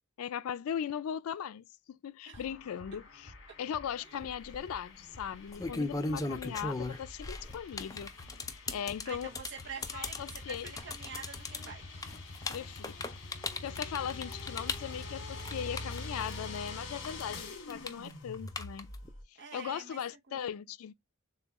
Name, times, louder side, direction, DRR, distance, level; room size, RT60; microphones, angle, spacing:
voice 1, 0.2-3.3 3.6-8.1 8.7-9.3 9.9-10.7 12.5-13.0 13.6-18.9 19.3-20.9, left 8 dB, 90° left, 0.4 m, -39 dB
sound 1, 2.3-19.2, left 2 dB, 65° left, 1.7 m, -45 dB
sound 2, 4.2-4.6 5.3-16.7 17.0-19.1, left 3 dB, 15° left, 0.5 m, -37 dB
voice 2, 9.0-12.0 19.4-20.0 20.3-20.5, right 6 dB, 60° right, 0.8 m, -46 dB
6.9 x 2.3 x 2.9 m
head